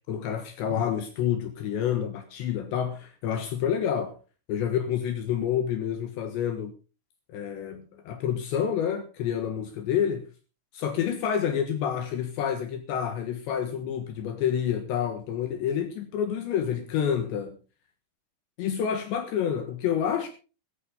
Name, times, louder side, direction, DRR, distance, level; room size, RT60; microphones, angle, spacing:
voice 1, 0.1-4.1 4.5-6.7 7.3-10.2 10.7-17.6 18.6-20.3, left 9 dB, 70° left, 3.4 m, -28 dB
15.0 x 14.5 x 3.7 m
omnidirectional pair, 5.9 m